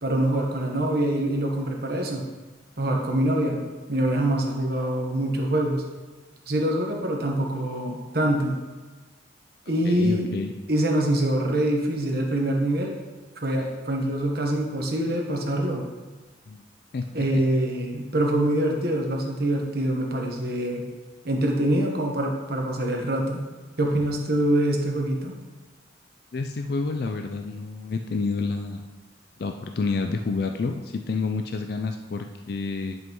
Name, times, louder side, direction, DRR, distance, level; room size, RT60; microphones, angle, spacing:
voice 1, 0.0-2.2 2.8-3.6 3.9-5.8 6.5-8.6 9.7-10.3 10.7-13.0 13.4-15.8 17.1-20.9 21.2-23.5 23.8-25.3, right 1 dB, 50° right, 0 dB, 1.2 m, -24 dB
voice 2, 9.8-10.5 16.5-16.6 16.9-17.1 17.3-17.4 26.3-28.9 29.4-33.0, left 4 dB, 50° left, 5 dB, 0.4 m, -29 dB
10.5 x 5.4 x 3.1 m, 1.3 s
head